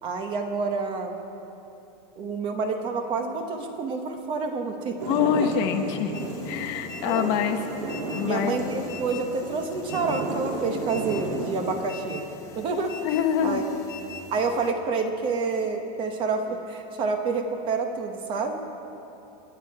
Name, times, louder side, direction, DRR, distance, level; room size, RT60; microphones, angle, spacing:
voice 1, 0.0-1.1 2.2-5.0 7.0-7.3 8.2-12.2 12.5-12.9 13.4-13.7 14.3-18.6, right 4 dB, 25° right, 5 dB, 1.0 m, -28 dB
sound 1, 5.0-11.8, right 2 dB, 85° right, 3.1 m, -33 dB
voice 2, 5.1-6.1 6.4-7.6 7.9-8.6 13.0-13.6, left 8 dB, 40° left, 6 dB, 1.0 m, -25 dB
sound 2, 6.1-14.7, left 5 dB, 15° left, 1.0 m, -43 dB
28.0 x 9.7 x 4.8 m, 2.9 s
supercardioid pair, 180°, 21 cm